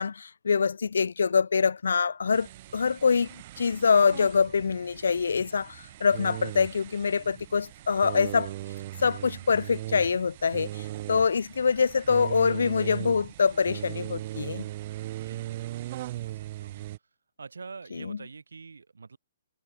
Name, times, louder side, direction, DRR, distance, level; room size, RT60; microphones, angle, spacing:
voice 1, 0.0-2.5 2.7-8.5 9.0-14.7 17.9-18.2, left 5 dB, 75° left, 0.5 m, -25 dB
sound 1, 2.3-17.0, right 15 dB, 45° right, 1.3 m, -39 dB
voice 2, 15.2-16.9 17.4-19.2, right 4 dB, 80° right, 5.4 m, -46 dB
figure-of-eight pair, 125°, 0 cm